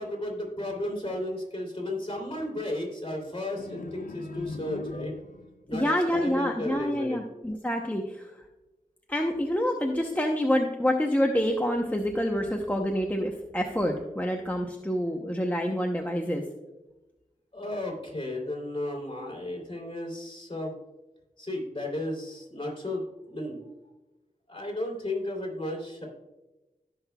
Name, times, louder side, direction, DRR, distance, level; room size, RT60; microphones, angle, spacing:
voice 1, 0.0-5.1 5.7-7.2 17.5-20.7 21.4-23.5 24.5-26.0, left 1 dB, 40° left, -1 dB, 3.1 m, -34 dB
sound 1, 3.6-5.6, left 3 dB, 70° left, 0.7 m, -39 dB
voice 2, 5.7-8.3 9.1-16.4, equal, 10° left, 1 dB, 0.8 m, -27 dB
17.0 x 5.9 x 2.3 m, 1.0 s
wide cardioid pair, 65°, 15 cm